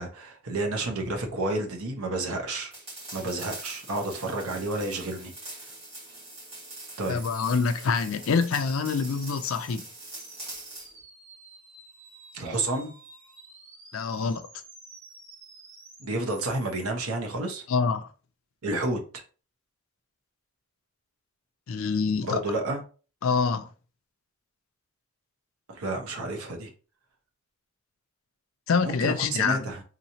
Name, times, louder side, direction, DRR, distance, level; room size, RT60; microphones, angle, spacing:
voice 1, 0.0-2.7 3.1-5.3 5.6-5.7 7.0-7.2 12.3-12.9 16.0-17.6 18.6-19.0 22.2-22.8 25.7-26.7 28.8-29.8, right 2 dB, 80° right, 0.8 m, -30 dB
sound 1, 2.7-10.9, right 2 dB, 25° right, 2.1 m, -43 dB
voice 2, 7.1-9.9 13.9-14.5 17.7-18.1 21.7-22.4 23.2-23.7 28.7-29.6, left 5 dB, 70° left, 0.4 m, -26 dB
sound 2, 8.5-9.8 10.2-16.8, right 3 dB, 55° right, 1.6 m, -51 dB
3.8 x 3.0 x 2.7 m
head